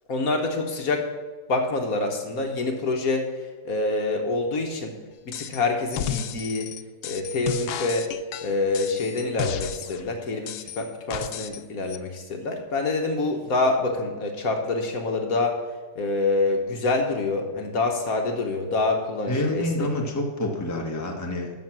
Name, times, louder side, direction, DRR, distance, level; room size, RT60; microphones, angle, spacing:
voice 1, 0.1-1.1 1.5-3.3 3.6-5.0 5.2-6.7 7.0-8.1 8.4-15.6 16.0-19.9, left 3 dB, 60° left, 3 dB, 1.6 m, -26 dB
sound 1, 5.3-5.6 5.9-10.0 10.5-11.6 11.9-12.0, left 10 dB, 85° left, 1.2 m, -33 dB
voice 2, 19.3-21.5, left 1 dB, 10° left, 1 dB, 1.1 m, -27 dB
13.0 x 6.2 x 6.0 m, 1.3 s
omnidirectional pair, 1.7 m